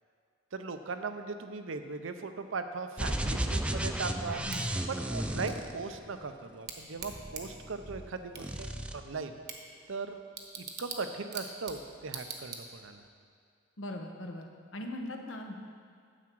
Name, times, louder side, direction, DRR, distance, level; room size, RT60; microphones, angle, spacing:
voice 1, 0.5-4.4 4.9-9.4 9.9-10.2 10.6-13.0, right 4 dB, 85° right, 8 dB, 0.6 m, -38 dB
sound 1, 3.0-6.3 7.0-8.1 8.3-9.0, right 1 dB, 5° right, 0.4 m, -34 dB
Bicycle / Tick, 4.5-13.1, right 5 dB, 55° right, 1.0 m, -46 dB
voice 2, 13.8-15.6, left 1 dB, 85° left, 3 dB, 1.0 m, -40 dB
9.8 x 7.3 x 4.6 m, 2.3 s
head